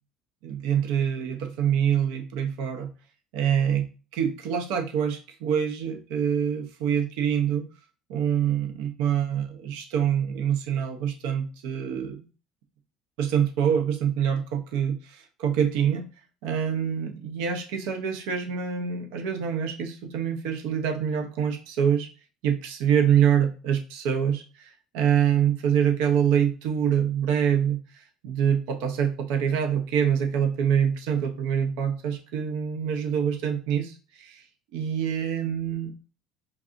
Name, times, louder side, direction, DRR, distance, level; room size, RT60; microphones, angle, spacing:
voice 1, 0.4-2.9 3.3-3.9 4.1-7.7 8.1-12.2 13.2-16.0 16.4-22.1 22.4-24.4 24.9-34.4 34.7-35.9, right 8 dB, 85° right, 5 dB, 0.7 m, -25 dB
4.7 x 2.6 x 2.5 m, 0.35 s
cardioid pair, 145°, 0 cm